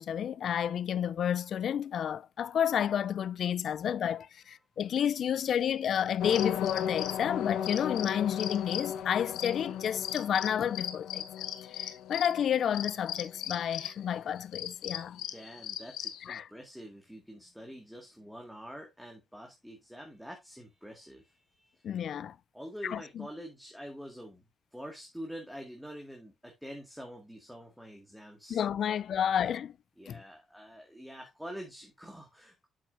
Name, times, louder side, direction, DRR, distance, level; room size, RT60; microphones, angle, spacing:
voice 1, 0.0-11.2 11.7-15.2 16.3-16.5 21.8-22.4 22.8-23.3 28.5-29.8 30.1-30.2, left 9 dB, 60° left, 0.4 m, -31 dB
sound 1, 6.2-14.0 14.4-16.2, left 10 dB, 90° left, 1.0 m, -36 dB
voice 2, 15.2-22.0 22.5-24.4 24.7-28.6 28.9-29.3 30.0-32.7, equal, ahead, 2.0 m, -46 dB
7.5 x 7.3 x 2.6 m
cardioid pair, 90°, 0 cm